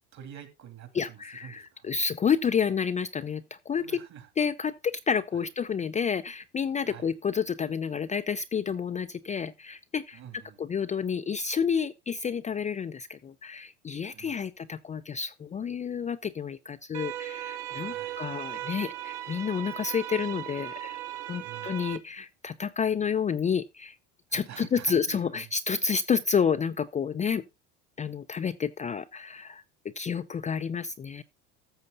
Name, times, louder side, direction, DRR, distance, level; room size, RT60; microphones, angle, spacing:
voice 1, 0.1-1.9 3.8-4.3 5.3-5.4 6.9-7.1 10.1-10.6 14.1-14.4 17.8-18.3 21.4-21.8 24.3-25.5, right 9 dB, 50° right, 3.0 m, -47 dB
voice 2, 0.9-3.9 4.4-10.2 10.6-21.0 21.3-24.0 24.3-27.4 28.0-29.6 30.0-31.2, left 6 dB, 20° left, 0.5 m, -30 dB
sound 1, 16.9-22.0, right 13 dB, 80° right, 1.2 m, -37 dB
13.5 x 6.8 x 3.9 m
supercardioid pair, 100°, 35 cm